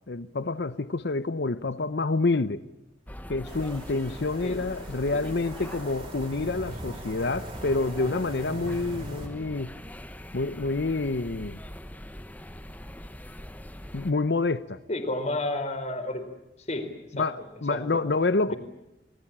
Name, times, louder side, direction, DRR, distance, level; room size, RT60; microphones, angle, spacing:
voice 1, 0.1-2.7 3.3-9.8 10.3-11.6 13.9-14.8 17.1-18.5, left 3 dB, 65° left, 0.8 m, -28 dB
sound 1, 3.1-14.1, equal, 10° left, 1.2 m, -42 dB
sound 2, 3.4-9.3, right 1 dB, 35° right, 4.8 m, -41 dB
voice 2, 14.9-16.2 16.7-16.9 17.2-17.3 17.7-18.0 18.5-18.6, left 1 dB, 40° left, 4.2 m, -31 dB
27.0 x 20.0 x 8.7 m
head